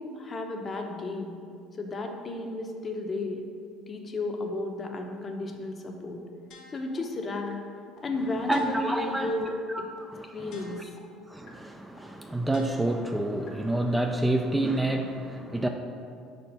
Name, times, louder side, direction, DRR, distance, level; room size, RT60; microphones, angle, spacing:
voice 1, 0.0-1.3 1.8-3.4 3.9-6.2 6.7-7.6 8.0-9.6 10.3-10.8, left 2 dB, 35° left, 3 dB, 0.8 m, -33 dB
sound 1, 6.5-7.0 7.5-7.6 8.0-8.1 8.5-9.0 9.5-9.6 10.0-10.1 10.5-11.0 11.5-11.6 12.0-12.1 12.5-13.0 13.5-13.6, left 4 dB, 65° left, 1.5 m, -50 dB
voice 2, 8.5-9.3 9.7-10.9 11.3-15.7, right 1 dB, 10° right, 4 dB, 0.4 m, -29 dB
4.8 x 4.3 x 5.4 m, 2.3 s
supercardioid pair, 85°, 0 cm